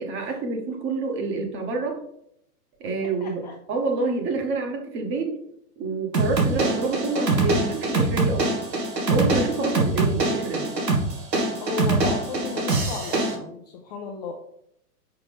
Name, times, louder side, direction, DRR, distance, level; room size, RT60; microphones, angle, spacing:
voice 1, 0.0-2.0 2.8-5.3 5.8-8.6 9.1-10.7, right 3 dB, 25° right, 3 dB, 1.2 m, -28 dB
voice 2, 3.2-3.5 9.6-10.1 11.6-14.3, left 5 dB, 25° left, 2 dB, 0.5 m, -34 dB
sound 1, 6.1-13.3, right 2 dB, 85° right, 1.8 m, -24 dB
5.8 x 4.8 x 3.5 m, 0.72 s
hypercardioid pair, 120°, 48 cm